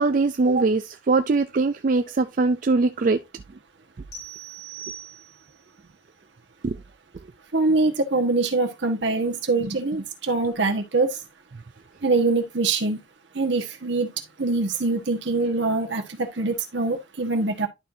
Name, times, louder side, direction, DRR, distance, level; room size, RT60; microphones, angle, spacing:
voice 1, 0.0-3.2 6.6-6.8, right 3 dB, 45° right, 0.4 m, -21 dB
sound 1, 4.1-5.6, right 6 dB, 65° left, 2.8 m, -40 dB
voice 2, 7.5-11.2 12.0-13.0 13.3-14.1 14.4-17.7, right 3 dB, 70° right, 1.4 m, -24 dB
11.5 x 4.5 x 2.6 m
head